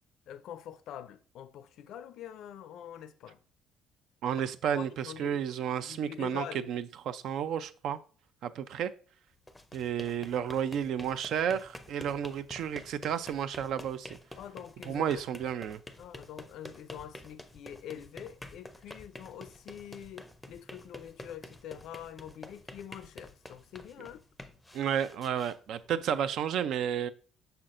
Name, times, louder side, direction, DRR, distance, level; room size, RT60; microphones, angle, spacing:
voice 1, 0.3-3.4 4.7-5.4 5.8-6.7 14.4-15.2 16.0-24.2, left 10 dB, 65° left, 0.4 m, -45 dB
voice 2, 4.2-8.0 8.4-8.9 9.7-14.2 14.9-15.8 24.7-27.1, right 9 dB, 65° right, 0.4 m, -32 dB
sound 1, 9.3-26.3, left 1 dB, 10° left, 0.5 m, -49 dB
6.6 x 5.8 x 2.5 m
cardioid pair, 130°, 0 cm